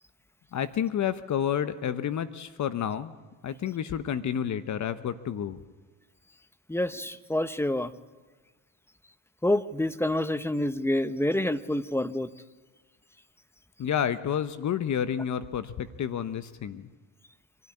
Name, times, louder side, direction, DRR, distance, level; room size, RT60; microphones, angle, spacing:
voice 1, 0.5-3.1 3.4-5.6 13.8-16.9, left 9 dB, 50° left, 12 dB, 1.1 m, -30 dB
voice 2, 6.7-7.9 9.4-12.3, left 1 dB, 5° left, 12 dB, 1.0 m, -27 dB
26.0 x 12.5 x 9.9 m, 1.3 s
supercardioid pair, 75°, 37 cm